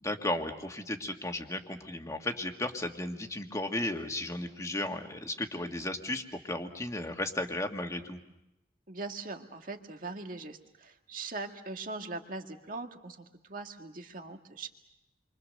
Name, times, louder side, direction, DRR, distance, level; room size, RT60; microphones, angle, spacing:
voice 1, 0.0-8.2, left 1 dB, 20° left, 4 dB, 1.8 m, -35 dB
voice 2, 8.9-14.7, right 3 dB, 50° right, 4 dB, 2.0 m, -41 dB
29.5 x 24.5 x 6.6 m, 0.90 s
head